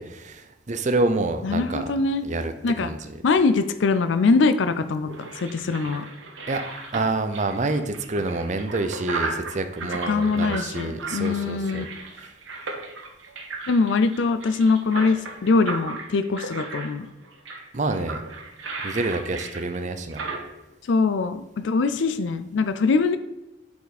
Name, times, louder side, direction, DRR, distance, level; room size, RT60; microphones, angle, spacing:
voice 1, 0.0-1.9 2.2-2.5 2.8-3.2 6.5-6.6 6.9-11.9 12.2-12.3 17.7-18.2 18.8-20.2, right 2 dB, 40° right, 9 dB, 0.6 m, -27 dB
voice 2, 1.4-2.2 2.6-2.9 3.2-5.1 5.4-6.0 10.1-11.9 13.7-17.1 20.9-23.2, left 4 dB, 70° left, 10 dB, 0.4 m, -22 dB
sound 1, 4.9-20.4, right 3 dB, 90° right, 1.5 m, -35 dB
8.1 x 4.9 x 4.1 m, 0.98 s
head